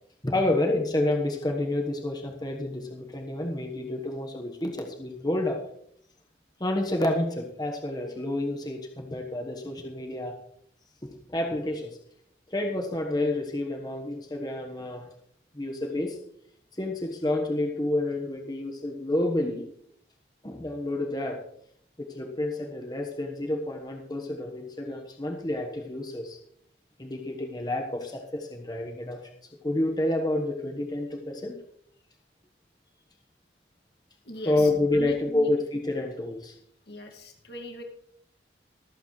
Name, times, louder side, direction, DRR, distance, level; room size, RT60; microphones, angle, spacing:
voice 1, 0.2-5.6 6.6-10.4 11.0-12.0 12.5-15.1 15.5-16.2 16.8-19.6 20.4-21.4 22.0-26.4 27.0-29.3 29.6-31.5 34.4-36.5, left 1 dB, 20° left, 2 dB, 1.3 m, -29 dB
voice 2, 34.3-35.5 36.9-37.8, equal, 60° left, 2 dB, 2.0 m, -41 dB
23.5 x 8.3 x 3.2 m, 0.68 s
head